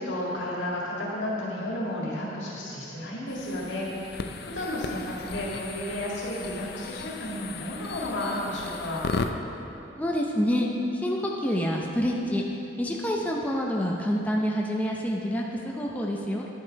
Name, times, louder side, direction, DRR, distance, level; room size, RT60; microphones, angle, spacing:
voice 1, 0.0-9.0, left 1 dB, 80° left, -4 dB, 1.9 m, -32 dB
sound 1, 3.3-9.3, left 4 dB, 60° left, 0.4 m, -36 dB
voice 2, 9.9-12.4 12.8-16.5, equal, 10° left, -1 dB, 0.6 m, -27 dB
10.5 x 5.9 x 4.6 m, 2.8 s
head